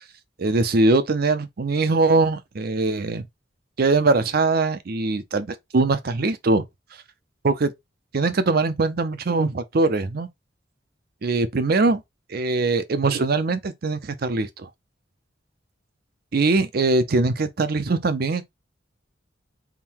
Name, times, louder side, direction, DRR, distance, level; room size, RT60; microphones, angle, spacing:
voice 1, 0.4-3.2 3.8-6.6 7.4-7.7 8.1-10.3 11.2-12.0 12.3-14.7 16.3-18.4, right 3 dB, 55° right, 0.6 m, -22 dB
3.7 x 2.2 x 4.4 m
head